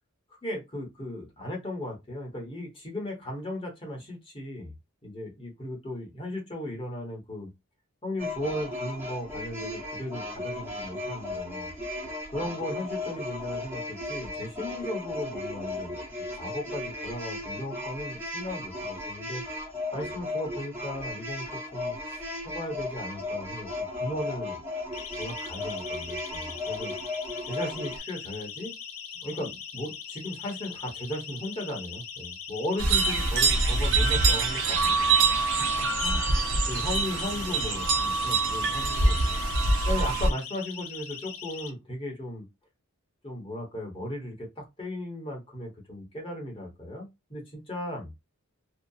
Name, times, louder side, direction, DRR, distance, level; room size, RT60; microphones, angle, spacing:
voice 1, 0.4-4.7 5.0-7.5 8.0-11.7 12.3-16.0 16.3-19.4 19.9-24.6 25.2-26.9 27.4-28.7 29.2-35.3 35.6-39.4 39.9-42.4 43.2-48.1, left 1 dB, 25° left, 1.0 m, -36 dB
sound 1, 8.2-28.0, left 2 dB, 10° right, 1.0 m, -36 dB
Siren, 24.9-41.7, left 7 dB, 75° left, 0.6 m, -41 dB
sound 2, 32.8-40.3, right 3 dB, 55° right, 0.6 m, -24 dB
2.7 x 2.3 x 2.3 m
head